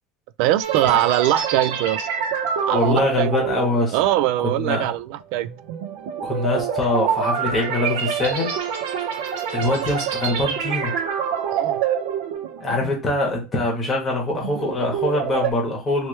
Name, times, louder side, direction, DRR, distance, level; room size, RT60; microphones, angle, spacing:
voice 1, 0.4-2.1 2.6-3.7 3.9-5.5 11.5-11.8, right 14 dB, 60° right, 0.3 m, -22 dB
sound 1, 0.6-13.1 13.4-13.7 14.2-15.5, right 7 dB, 90° right, 0.9 m, -26 dB
voice 2, 2.7-4.0 4.4-4.9 6.2-8.6 9.5-11.0 12.6-16.1, left 2 dB, 15° left, 1.2 m, -23 dB
3.1 x 3.1 x 3.2 m
cardioid pair, 170°, 0 cm